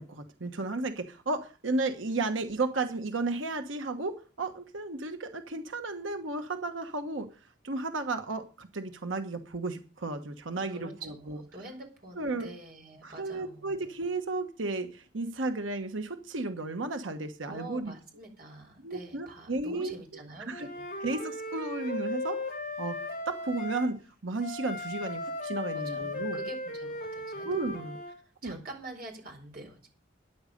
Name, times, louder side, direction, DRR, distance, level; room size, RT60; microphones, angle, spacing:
voice 1, 0.0-7.3 7.6-11.4 12.2-12.5 13.0-17.9 18.8-20.0 20.5-20.7 21.0-22.4 22.8-23.0 23.3-26.4 27.4-28.0 28.4-28.6, right 3 dB, 90° right, 7 dB, 1.2 m, -33 dB
voice 2, 10.7-13.9 17.4-20.9 25.7-27.5 28.2-29.9, right 2 dB, 50° right, 3 dB, 4.5 m, -46 dB
Wind instrument woodwind instrument, 20.5-23.9 24.4-28.2, left 2 dB, 45° left, 3.6 m, -36 dB
13.5 x 9.7 x 5.2 m, 0.37 s
head